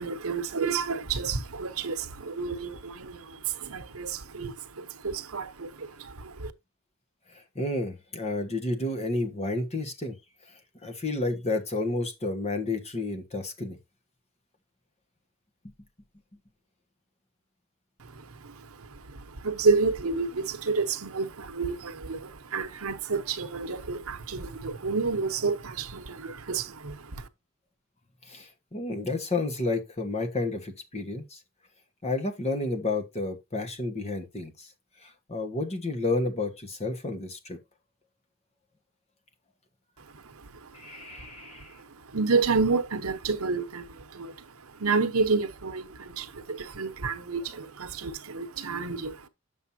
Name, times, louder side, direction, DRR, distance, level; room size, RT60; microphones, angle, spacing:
voice 1, 0.0-6.5 18.0-27.3 40.0-49.3, right 4 dB, 85° right, 1.0 m, -30 dB
voice 2, 7.3-10.2 10.8-13.8 28.3-31.4 32.0-34.7 35.0-37.6 40.7-41.8, left 2 dB, 30° left, 1.4 m, -31 dB
9.1 x 7.2 x 2.8 m
head